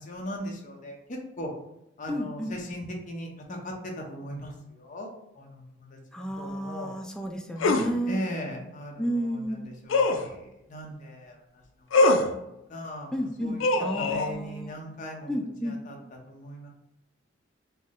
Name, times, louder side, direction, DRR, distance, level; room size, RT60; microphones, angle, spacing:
voice 1, 0.0-1.5 2.0-5.1 5.3-6.9 8.0-12.3 12.7-13.6 14.0-15.3 15.6-16.0 16.3-16.7, equal, 40° left, 1 dB, 0.7 m, -39 dB
voice 2, 2.1-2.5 6.1-8.2 9.0-9.7 13.1-14.8 15.3-15.8, equal, 5° left, 3 dB, 0.3 m, -32 dB
sound 1, 7.6-7.9 9.9-10.3 11.9-12.3 13.6-14.3, left 2 dB, 85° left, 0.4 m, -22 dB
4.2 x 2.0 x 3.5 m, 0.86 s
head